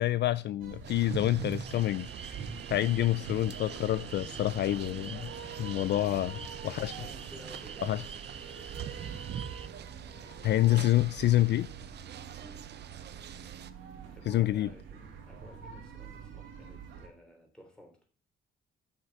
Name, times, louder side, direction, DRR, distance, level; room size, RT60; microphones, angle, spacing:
voice 1, 0.0-2.4 2.7-5.3 5.6-6.4 6.6-6.9 7.8-8.0 10.4-11.7 14.3-14.7, left 14 dB, 60° left, 0.4 m, -27 dB
sound 1, 0.6-17.1, right 5 dB, 85° right, 2.4 m, -45 dB
sound 2, 0.8-13.7, right 9 dB, 60° right, 0.8 m, -45 dB
sound 3, 1.7-9.7, right 5 dB, 30° right, 0.7 m, -48 dB
voice 2, 6.9-9.4 9.9-11.3 12.4-12.7 14.1-18.0, left 1 dB, 5° left, 3.4 m, -55 dB
8.1 x 6.5 x 5.9 m
cardioid pair, 90°, 20 cm